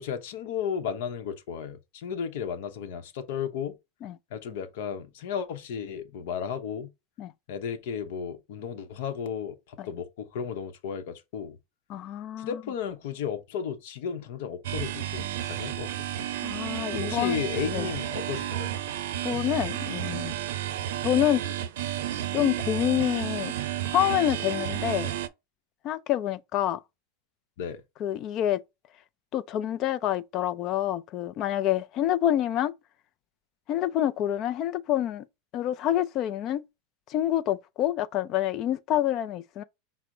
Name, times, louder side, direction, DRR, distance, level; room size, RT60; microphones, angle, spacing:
voice 1, 0.0-3.8 4.3-6.9 7.5-11.6 12.4-16.3 17.0-18.8 27.6-27.8, left 7 dB, 65° left, 0.8 m, -34 dB
voice 2, 11.9-12.6 16.4-17.4 17.7-17.9 19.2-20.3 21.0-21.4 22.3-23.5 23.9-25.1 25.8-26.8 28.0-28.6 29.3-32.7 33.7-35.2 35.5-36.6 37.1-39.6, left 11 dB, 35° left, 0.3 m, -27 dB
sound 1, 14.6-25.3, right 12 dB, 80° right, 0.5 m, -32 dB
6.0 x 2.0 x 3.7 m
supercardioid pair, 165°, 0 cm